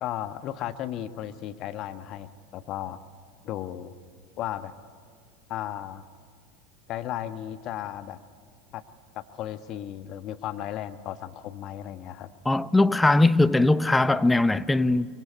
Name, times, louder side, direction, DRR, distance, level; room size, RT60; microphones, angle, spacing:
voice 1, 0.0-3.0 3.4-3.9 4.4-4.7 5.5-6.0 6.9-8.2 8.7-8.8 9.1-12.3, left 12 dB, 45° left, 1.4 m, -35 dB
voice 2, 12.4-15.1, left 2 dB, 10° left, 0.7 m, -20 dB
25.0 x 23.0 x 9.6 m
hypercardioid pair, 85°, 0 cm